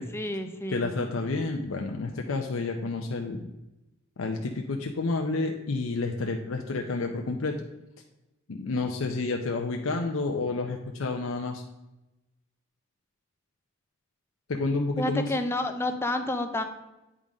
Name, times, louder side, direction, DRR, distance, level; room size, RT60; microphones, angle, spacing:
voice 1, 0.1-0.9 15.0-16.6, left 1 dB, 10° left, 6 dB, 0.6 m, -29 dB
voice 2, 0.7-3.5 4.2-7.5 8.5-11.6 14.5-15.3, left 3 dB, 70° left, 3 dB, 0.6 m, -30 dB
8.8 x 3.7 x 5.1 m, 0.98 s
head